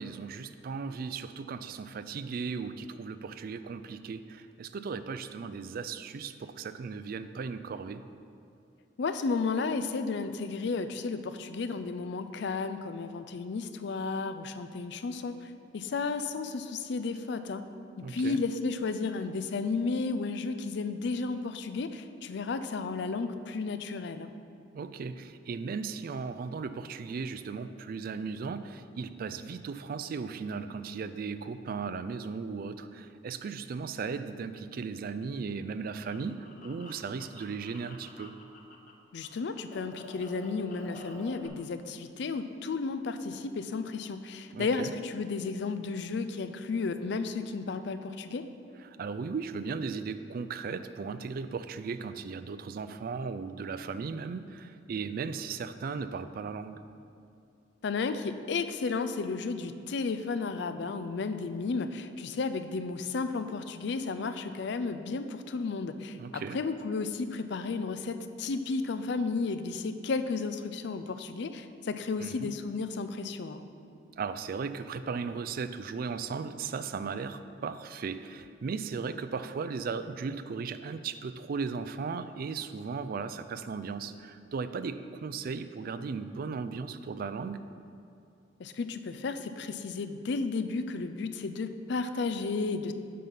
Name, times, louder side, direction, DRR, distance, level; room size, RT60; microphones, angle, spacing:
voice 1, 0.0-8.0 18.0-18.4 24.7-38.3 44.5-44.9 48.8-56.8 66.1-66.6 72.2-72.6 74.2-87.6, right 5 dB, 55° right, 12 dB, 0.3 m, -36 dB
voice 2, 9.0-17.6 18.1-24.3 39.1-48.4 57.8-73.6 88.6-92.9, left 4 dB, 65° left, 10 dB, 0.4 m, -33 dB
sound 1, 35.5-38.9 39.2-41.5, left 2 dB, 50° left, 0.9 m, -50 dB
7.5 x 5.4 x 5.7 m, 2.5 s
head